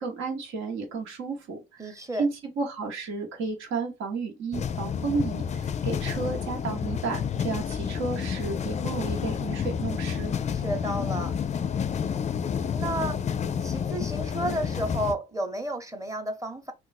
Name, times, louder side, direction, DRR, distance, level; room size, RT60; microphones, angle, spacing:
voice 1, 0.0-2.3 2.6-10.3, right 4 dB, 85° right, 1.1 m, -32 dB
voice 2, 1.8-2.3 10.5-11.3 12.7-13.2 13.6-16.7, right 1 dB, 15° right, 0.8 m, -32 dB
sound 1, 4.5-15.1, left 7 dB, 35° left, 0.4 m, -30 dB
2.4 x 2.3 x 4.0 m
cardioid pair, 90°, 20 cm